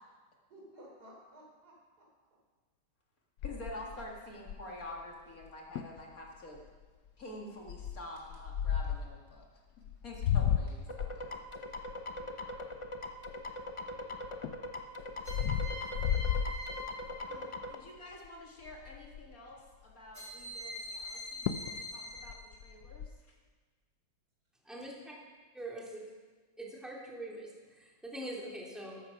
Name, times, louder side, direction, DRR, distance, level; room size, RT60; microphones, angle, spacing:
voice 1, 0.5-2.4 11.3-11.4 11.9-12.6, equal, 60° right, -3 dB, 4.7 m, -57 dB
sound 1, 3.4-4.9 5.4-5.5 5.8-6.0 6.5-6.8 7.7-9.1 9.8-13.7 14.2-17.2 17.7-18.0 18.2-18.3 18.6-19.4 21.0-21.1 21.5-21.8 22.1-23.1, left 9 dB, 70° left, 1.1 m, -34 dB
voice 2, 3.4-6.6 7.2-9.5 10.0-11.4 17.3-23.1, left 1 dB, 50° left, -1 dB, 2.4 m, -48 dB
sound 2, 10.9-17.7, left 1 dB, 30° left, 0.5 m, -41 dB
sound 3, 15.2-17.9 20.1-22.7, left 1 dB, 40° right, 6.4 m, -44 dB
voice 3, 24.6-25.1 25.5-26.0 26.6-29.0, right 1 dB, ahead, -4 dB, 2.7 m, -43 dB
14.0 x 12.5 x 5.8 m, 1.4 s
omnidirectional pair, 1.9 m